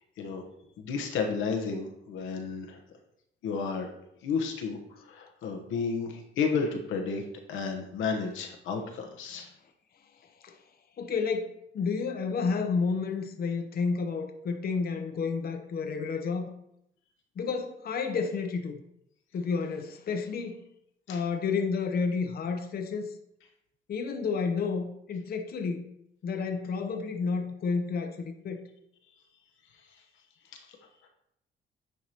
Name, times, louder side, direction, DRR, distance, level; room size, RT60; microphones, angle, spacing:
voice 1, 0.8-2.8 3.4-3.9 4.2-4.8 5.1-7.2 7.5-9.5 21.1-21.2, left 5 dB, 90° left, 1.1 m, -32 dB
voice 2, 11.0-16.5 17.4-18.8 19.3-20.6 21.1-23.1 23.9-25.9 26.2-28.6, left 5 dB, 50° left, 0.8 m, -30 dB
9.2 x 4.7 x 2.9 m
cardioid pair, 90°, 20 cm